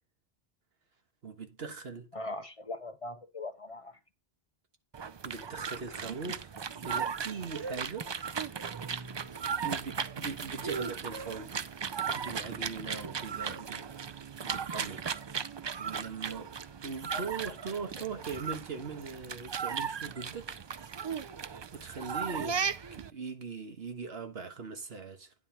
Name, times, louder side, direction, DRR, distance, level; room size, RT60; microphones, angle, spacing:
voice 1, 1.2-2.1 5.2-8.1 9.6-11.5 12.1-14.2 14.4-15.0 15.8-16.5 16.8-20.6 21.7-22.6 22.9-25.3, right 4 dB, 75° right, 1.6 m, -40 dB
voice 2, 2.1-4.0 17.1-17.5 18.0-18.1, left 2 dB, 40° left, 0.6 m, -41 dB
sound 1, 4.9-23.1, right 6 dB, 45° right, 0.3 m, -37 dB
9.8 x 4.3 x 5.6 m
omnidirectional pair, 1.0 m